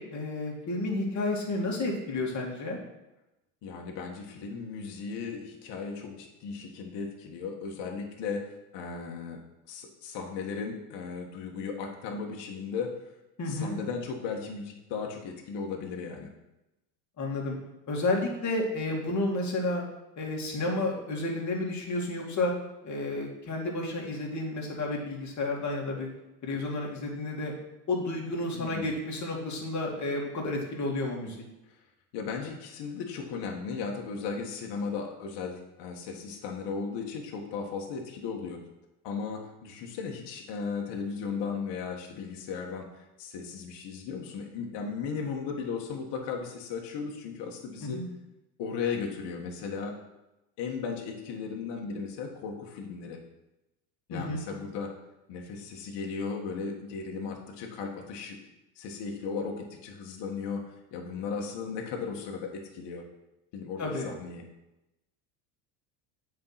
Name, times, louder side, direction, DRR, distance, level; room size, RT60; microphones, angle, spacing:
voice 1, 0.0-2.8 13.4-13.8 17.2-17.5 17.9-19.8 20.2-22.5 22.8-26.1 26.4-27.5 27.9-31.4 47.8-48.0 54.1-54.4 63.8-64.1, left 2 dB, 35° left, -1 dB, 2.5 m, -31 dB
voice 2, 3.6-9.4 9.7-12.9 13.5-16.3 28.5-28.9 32.1-38.6 39.0-42.9 43.2-48.0 48.6-50.0 50.6-53.2 54.1-54.9 55.3-58.4 58.7-60.6 60.9-63.0 63.5-64.4, left 5 dB, 55° left, 1 dB, 1.7 m, -36 dB
7.6 x 4.8 x 5.8 m, 0.95 s
supercardioid pair, 95°, 49 cm